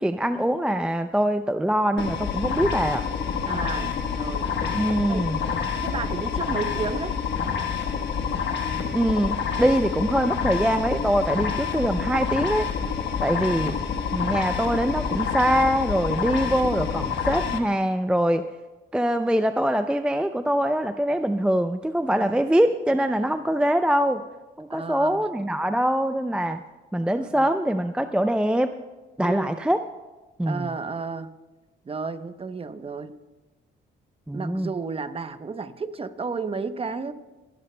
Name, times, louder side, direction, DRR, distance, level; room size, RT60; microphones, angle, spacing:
voice 1, 0.0-3.0 4.7-5.4 8.9-12.7 13.2-13.8 14.1-18.4 18.9-24.2 24.6-26.6 26.9-28.7 29.2-29.8 30.4-30.8 34.3-34.7, equal, 5° right, 9 dB, 0.4 m, -23 dB
sound 1, 2.0-17.6, left 6 dB, 60° left, 1.2 m, -28 dB
voice 2, 3.5-4.5 5.1-5.2 5.8-7.2 16.5-16.7 22.1-22.4 24.7-25.3 27.0-27.5 29.2-29.6 30.5-31.3 31.8-33.1 34.3-37.1, right 4 dB, 30° right, 11 dB, 0.8 m, -32 dB
26.0 x 12.0 x 2.2 m, 1.2 s
cardioid pair, 90°, 20 cm